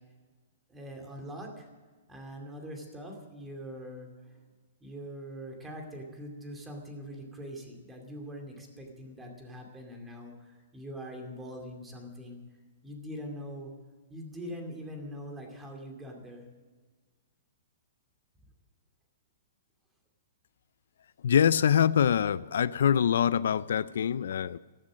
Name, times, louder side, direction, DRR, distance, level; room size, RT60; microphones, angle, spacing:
voice 1, 0.7-1.7 2.1-4.4 4.8-12.4 12.8-13.7 14.1-16.4, equal, 10° right, 2 dB, 2.5 m, -43 dB
voice 2, 21.2-24.6, left 8 dB, 70° left, 17 dB, 0.4 m, -24 dB
14.5 x 14.0 x 6.3 m, 1.4 s
hypercardioid pair, 170°, 0 cm